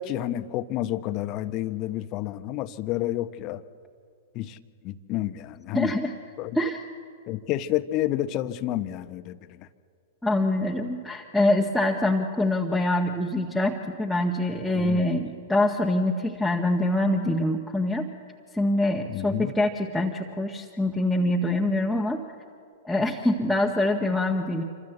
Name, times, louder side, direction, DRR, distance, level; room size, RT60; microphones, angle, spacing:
voice 1, 0.0-3.6 4.3-4.6 4.8-5.9 6.4-6.5 7.3-9.7 14.7-15.0 19.1-19.5, left 13 dB, 35° left, 12 dB, 1.1 m, -30 dB
voice 2, 5.7-6.1 6.5-6.8 10.2-18.1 18.5-22.2 22.8-24.6, left 1 dB, ahead, -1 dB, 1.7 m, -25 dB
27.5 x 25.0 x 8.1 m, 2.3 s
figure-of-eight pair, 105°, 0 cm